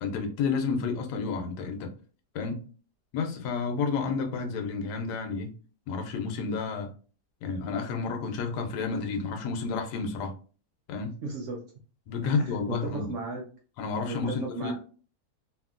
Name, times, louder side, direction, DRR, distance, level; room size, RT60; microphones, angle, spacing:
voice 1, 0.0-1.9 2.3-2.6 3.1-5.5 5.9-6.9 7.4-10.3 10.9-11.2 12.1-13.0 13.8-14.7, left 4 dB, 80° left, 1.2 m, -30 dB
voice 2, 11.2-11.6 12.2-13.4 14.1-14.7, right 3 dB, 70° right, 0.7 m, -36 dB
2.8 x 2.7 x 2.4 m
omnidirectional pair, 1.8 m